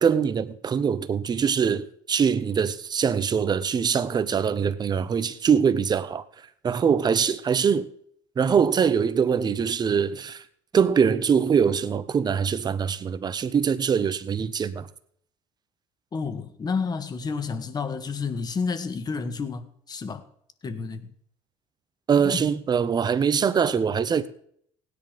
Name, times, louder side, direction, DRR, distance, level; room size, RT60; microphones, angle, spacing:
voice 1, 0.0-6.2 6.6-7.9 8.4-10.4 10.7-14.9 22.1-24.3, right 7 dB, 35° right, 1.2 m, -23 dB
voice 2, 16.1-20.2 20.6-21.1 22.2-22.5, left 5 dB, 35° left, 1.9 m, -30 dB
17.0 x 10.0 x 5.3 m
supercardioid pair, 85°, 12 cm